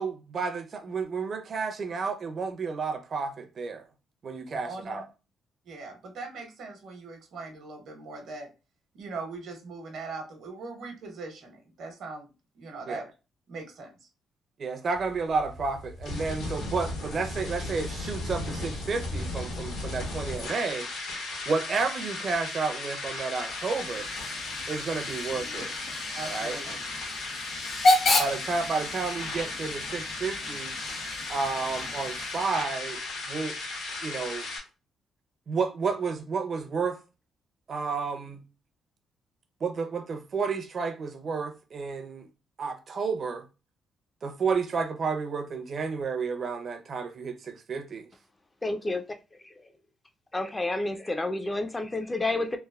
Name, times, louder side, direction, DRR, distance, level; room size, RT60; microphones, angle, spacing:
voice 1, 0.0-3.8 4.2-5.1 12.9-13.0 14.6-20.9 21.5-24.1 24.7-25.7 26.2-26.6 28.2-30.8 31.3-33.6 34.0-34.5 35.5-37.0 37.7-38.4 39.6-42.3 42.6-43.4 44.2-48.1, right 4 dB, 50° right, 0.6 m, -31 dB
voice 2, 5.7-8.5 8.9-13.0 13.5-13.9 25.3-25.6 26.1-26.8, right 3 dB, 75° right, 1.0 m, -40 dB
sound 1, 14.9-34.6, left 2 dB, 80° left, 1.1 m, -36 dB
Hiss / Train / Alarm, 23.1-32.8, left 2 dB, 55° left, 0.9 m, -31 dB
voice 3, 48.6-49.0 50.3-52.6, left 2 dB, 20° left, 0.4 m, -29 dB
3.2 x 2.0 x 2.3 m
cardioid pair, 90°, 0 cm